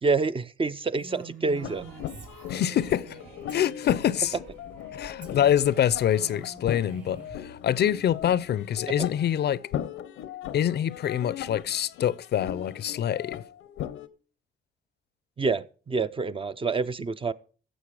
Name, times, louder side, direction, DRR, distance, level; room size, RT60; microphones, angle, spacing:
voice 1, 0.0-1.9 9.0-9.1 15.4-17.3, right 4 dB, 25° right, 0.5 m, -27 dB
Female speech woman speaking, 1.0-3.2 3.5-4.2 5.2-7.3, right 4 dB, 65° right, 3.2 m, -46 dB
sound 1, 1.4-8.2, right 4 dB, 85° right, 2.8 m, -51 dB
sound 2, 1.6-14.1, left 10 dB, 90° left, 0.8 m, -38 dB
voice 2, 2.5-3.2 3.5-4.4 4.9-9.6 10.5-13.4, left 10 dB, 55° left, 0.5 m, -25 dB
15.5 x 6.8 x 4.8 m
cardioid pair, 90°, 20 cm